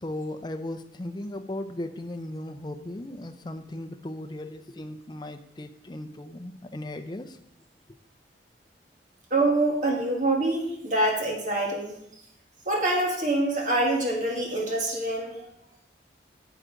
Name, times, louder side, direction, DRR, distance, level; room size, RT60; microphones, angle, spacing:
voice 1, 0.0-7.4, left 1 dB, 25° left, 8 dB, 0.5 m, -37 dB
voice 2, 9.3-12.0 12.7-15.5, right 2 dB, 45° right, 0 dB, 1.8 m, -25 dB
9.6 x 7.6 x 3.8 m, 0.76 s
head